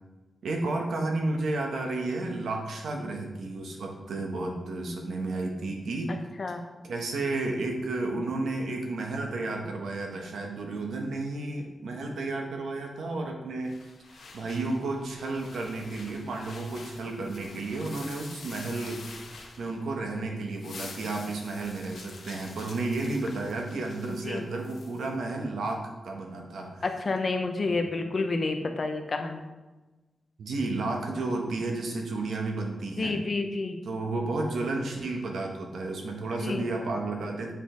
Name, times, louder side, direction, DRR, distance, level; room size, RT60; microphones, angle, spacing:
voice 1, 0.4-6.1 6.8-13.7 14.1-26.8 27.7-27.8 30.4-33.2 33.8-37.5, right 2 dB, 85° right, 1 dB, 1.3 m, -32 dB
voice 2, 6.1-6.6 24.2-24.4 26.8-29.4 33.0-33.8 36.4-36.7, left 3 dB, 35° left, 5 dB, 0.7 m, -30 dB
sound 1, 13.6-20.0 20.4-25.1, left 4 dB, 65° left, 1.0 m, -47 dB
7.4 x 5.2 x 3.8 m, 1.2 s
wide cardioid pair, 170°, 0 cm